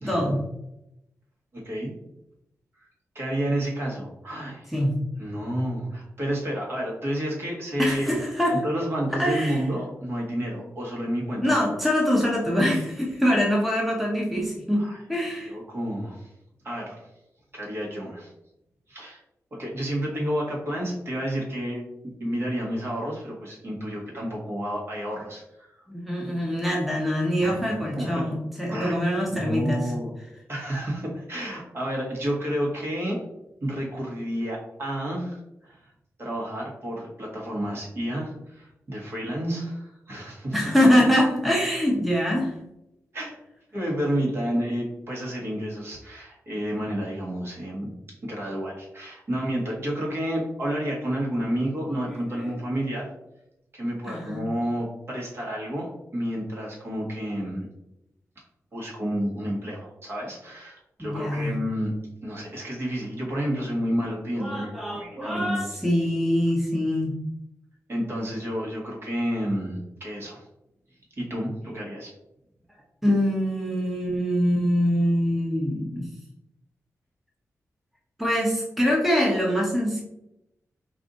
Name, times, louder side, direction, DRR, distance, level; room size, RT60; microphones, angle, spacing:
voice 1, 0.1-0.4 4.7-5.0 7.8-8.6 9.2-9.7 11.4-15.5 25.9-29.9 40.5-42.6 51.9-52.5 54.1-54.4 61.0-61.5 64.4-67.1 71.7-71.8 73.0-76.1 78.2-80.0, equal, ahead, -2 dB, 0.8 m, -24 dB
voice 2, 1.5-1.9 3.1-4.7 5.2-8.2 8.6-11.6 14.8-15.0 15.5-16.3 16.6-17.1 17.5-18.3 18.9-19.2 19.5-21.8 22.2-25.7 27.4-28.1 28.7-29.0 29.3-30.1 30.5-33.2 33.6-35.8 36.2-40.5 43.1-43.3 43.7-47.9 48.2-53.1 53.7-57.7 58.7-61.9 62.2-65.7 67.9-70.4 71.2-72.1, equal, 45° right, -3 dB, 1.5 m, -30 dB
4.7 x 2.6 x 4.0 m, 0.86 s
wide cardioid pair, 115°, 6 cm